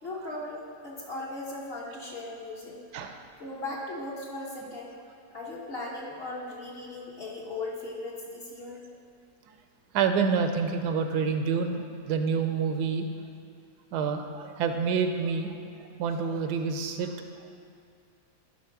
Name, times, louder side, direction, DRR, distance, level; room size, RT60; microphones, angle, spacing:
voice 1, 0.0-2.8 3.4-4.9 5.3-8.8, left 2 dB, 45° left, -3 dB, 1.0 m, -38 dB
voice 2, 9.9-13.1 13.9-15.6 16.0-17.1 17.4-17.5, right 5 dB, 80° right, 6 dB, 1.2 m, -28 dB
10.5 x 3.9 x 5.8 m, 2.5 s
omnidirectional pair, 1.8 m